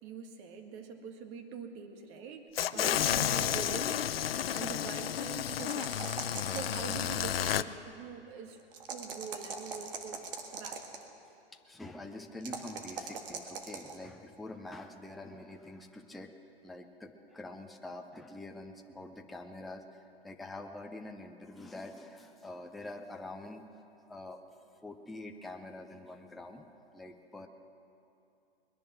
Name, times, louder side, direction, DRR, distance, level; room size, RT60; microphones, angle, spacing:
voice 1, 0.0-2.4 2.7-6.2 6.4-8.6 8.9-10.2 10.5-10.8, right 6 dB, 35° right, 5 dB, 1.7 m, -44 dB
sound 1, 2.6-7.6, left 10 dB, 70° left, 0.6 m, -31 dB
voice 2, 2.7-3.0 11.7-16.3 16.6-23.8 24.1-24.4 24.8-27.5, left 2 dB, ahead, 4 dB, 0.4 m, -46 dB
sound 2, 5.4-7.3 8.7-11.0 12.4-14.0, right 5 dB, 60° right, 1.8 m, -41 dB
21.0 x 10.5 x 6.2 m, 2.7 s
hypercardioid pair, 120°, 31 cm